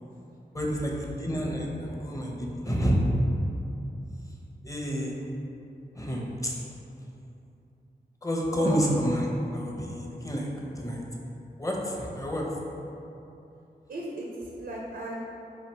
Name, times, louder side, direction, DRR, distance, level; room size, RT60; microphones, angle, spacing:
voice 1, 0.5-3.0 4.6-5.2 5.9-6.6 8.2-9.2 9.5-10.5 10.8-11.0 11.6-12.4, equal, 20° left, -2 dB, 0.8 m, -29 dB
voice 2, 8.5-8.9 13.9-15.2, right 1 dB, 75° right, -4 dB, 0.7 m, -36 dB
4.0 x 2.7 x 4.4 m, 2.8 s
cardioid pair, 45°, 18 cm